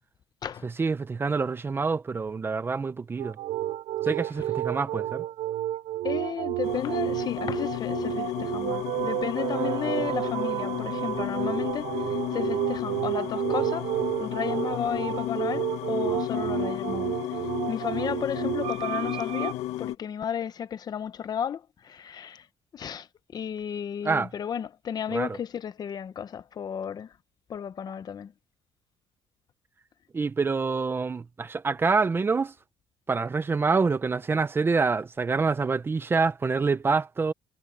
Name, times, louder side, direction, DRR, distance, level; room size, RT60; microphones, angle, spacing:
voice 1, 0.6-3.4 4.0-5.2 24.0-24.3 25.1-25.4 30.1-32.5 33.1-37.3, right 4 dB, 20° right, 0.8 m, -26 dB
sound 1, 3.2-19.5, right 16 dB, 70° right, 0.4 m, -31 dB
voice 2, 6.0-13.9 14.2-17.4 17.7-22.5 22.7-23.1 23.3-27.1 27.5-28.3, left 8 dB, 40° left, 0.9 m, -33 dB
sound 2, 6.6-20.0, left 14 dB, 80° left, 1.3 m, -33 dB
Brass instrument, 9.2-15.1, right 10 dB, 50° right, 1.4 m, -40 dB
cardioid pair, 145°, 11 cm